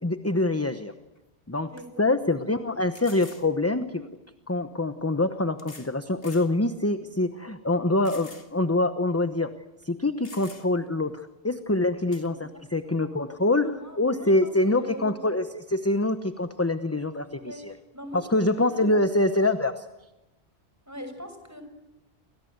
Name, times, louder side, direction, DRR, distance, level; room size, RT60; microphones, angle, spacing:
voice 1, 0.0-0.9 1.5-1.7 2.0-4.1 4.5-9.5 9.8-17.7 18.1-19.9, left 2 dB, 15° left, 10 dB, 1.0 m, -25 dB
sound 1, 1.2-1.3 1.8-1.9 2.9-3.5 4.6-4.7 5.6-5.9 6.2-6.5 7.0-7.1 8.0-8.5 8.8-8.9 9.8-9.9 10.2-10.9 12.1-12.3, left 3 dB, 60° left, 2.7 m, -47 dB
voice 2, 12.3-13.3 13.6-15.2 17.4-18.3 18.7-19.0 20.9-21.6, equal, 15° right, 7 dB, 6.1 m, -42 dB
29.5 x 25.0 x 8.1 m, 1.0 s
omnidirectional pair, 1.1 m